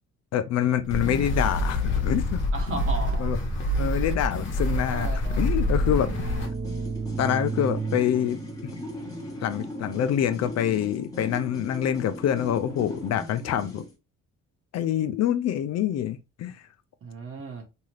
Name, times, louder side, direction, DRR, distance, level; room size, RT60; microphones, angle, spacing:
voice 1, 0.3-2.4 3.2-3.4 3.8-6.3 7.2-8.8 9.4-13.8 14.7-16.6, left 10 dB, 60° left, 0.4 m, -26 dB
sound 1, 0.8-6.5, left 1 dB, 40° left, 1.0 m, -26 dB
voice 2, 2.5-3.3 4.9-5.4 17.0-17.7, right 3 dB, 45° right, 1.1 m, -35 dB
sound 2, 5.0-10.6, right 5 dB, 25° right, 0.9 m, -35 dB
sound 3, 6.5-14.0, left 1 dB, 10° left, 1.1 m, -38 dB
2.7 x 2.4 x 3.1 m
cardioid pair, 110°, 30 cm